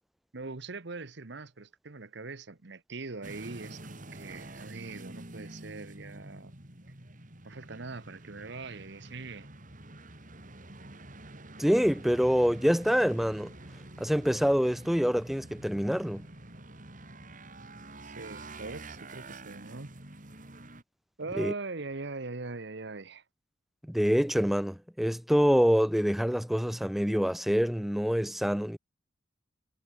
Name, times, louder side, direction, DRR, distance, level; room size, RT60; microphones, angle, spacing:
voice 1, 0.3-6.5 7.4-9.5 18.0-19.9 21.2-23.2, right 3 dB, 60° right, 1.1 m, -41 dB
sound 1, 3.2-20.8, right 2 dB, 45° right, 3.4 m, -47 dB
voice 2, 11.6-13.5 14.0-16.3 21.4-21.5 23.9-28.8, equal, ahead, 0.3 m, -26 dB
head